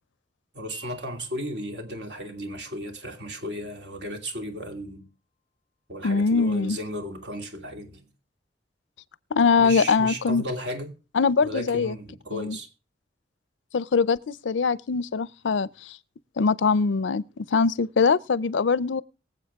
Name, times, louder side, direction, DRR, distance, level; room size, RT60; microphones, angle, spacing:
voice 1, 0.5-5.1 5.9-8.0 9.6-10.9 11.4-12.7, equal, 65° right, 2.6 m, -35 dB
Wind chime, 0.7-6.8, right 2 dB, 85° right, 4.1 m, -57 dB
voice 2, 6.0-6.8 9.3-10.4 11.1-12.0 12.3-12.6 13.7-16.0 16.4-19.0, left 5 dB, 85° left, 0.5 m, -22 dB
23.0 x 7.8 x 3.5 m
head